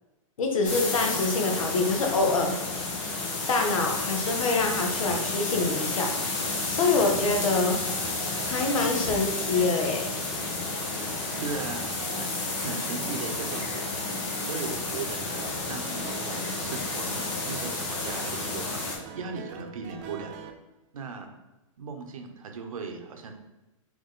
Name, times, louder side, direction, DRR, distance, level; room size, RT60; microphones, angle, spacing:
voice 1, 0.4-2.5 3.5-6.1 6.7-7.8 8.4-10.1, left 3 dB, 75° left, 2 dB, 1.0 m, -25 dB
sound 1, 0.6-19.0, left 3 dB, 55° left, 1.2 m, -31 dB
sound 2, 4.6-20.5, right 6 dB, 35° right, 0.5 m, -43 dB
voice 2, 11.4-20.3 20.9-21.3 21.8-23.4, right 4 dB, 85° right, 5 dB, 0.8 m, -38 dB
3.9 x 3.0 x 3.7 m, 1.0 s
hypercardioid pair, 145°, 17 cm